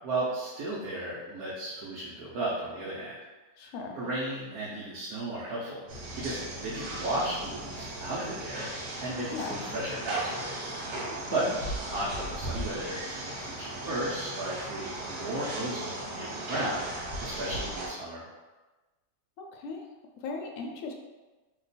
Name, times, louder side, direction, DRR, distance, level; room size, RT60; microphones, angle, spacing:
voice 1, 0.0-3.1 3.6-5.8 6.1-8.7 9.0-10.5 11.2-11.4 11.8-16.9 17.2-18.3, right 2 dB, 70° right, -8 dB, 1.1 m, -34 dB
voice 2, 3.6-4.0 9.3-9.6 11.1-11.6 19.4-19.8 20.2-20.9, left 4 dB, 70° left, 2 dB, 0.8 m, -38 dB
sound 1, 5.9-17.9, right 1 dB, 85° right, 1.5 m, -37 dB
3.0 x 2.2 x 4.0 m, 1.2 s
omnidirectional pair, 1.8 m